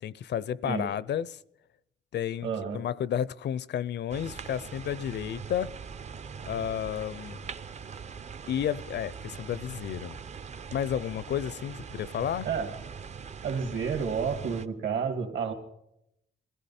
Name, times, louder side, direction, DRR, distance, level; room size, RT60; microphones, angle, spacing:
voice 1, 0.0-1.4 2.1-2.5 2.7-5.7 6.5-7.4 8.5-10.2 10.7-12.5, left 9 dB, 60° left, 0.5 m, -31 dB
voice 2, 2.4-2.8 12.4-12.7 13.4-15.5, right 6 dB, 65° right, 2.4 m, -30 dB
sound 1, 4.1-14.7, right 6 dB, 35° right, 0.5 m, -42 dB
22.0 x 15.0 x 4.3 m
cardioid pair, 125°, 20 cm